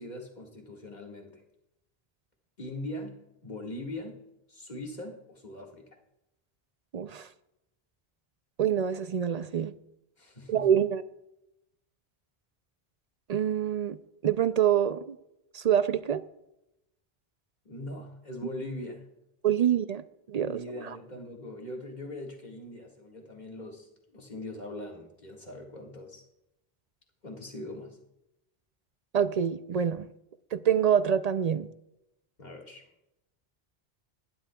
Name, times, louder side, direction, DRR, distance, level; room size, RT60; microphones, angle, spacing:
voice 1, 0.0-1.4 2.6-4.2 4.5-6.0 10.2-10.7 17.7-19.0 20.4-26.2 27.2-28.0 32.4-32.9, left 1 dB, 45° left, 0 dB, 2.0 m, -41 dB
voice 2, 6.9-7.3 8.6-9.7 10.5-11.0 13.3-14.0 14.2-15.2 15.5-16.2 19.4-20.0 20.3-20.6 29.1-30.1 30.5-31.7, right 9 dB, 55° right, 13 dB, 0.5 m, -26 dB
18.0 x 11.5 x 2.3 m, 0.86 s
omnidirectional pair, 1.0 m